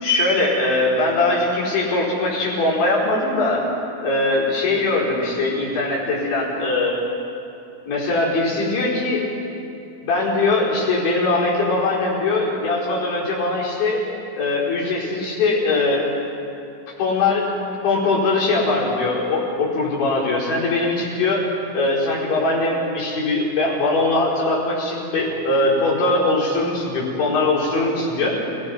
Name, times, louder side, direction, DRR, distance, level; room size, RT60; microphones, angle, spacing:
voice 1, 0.0-3.7 4.0-7.0 7.9-9.3 10.0-14.0 14.4-16.1 17.0-21.4 21.7-28.4, left 2 dB, 60° left, -6 dB, 6.9 m, -21 dB
30.0 x 18.5 x 6.1 m, 2.6 s
omnidirectional pair, 5.9 m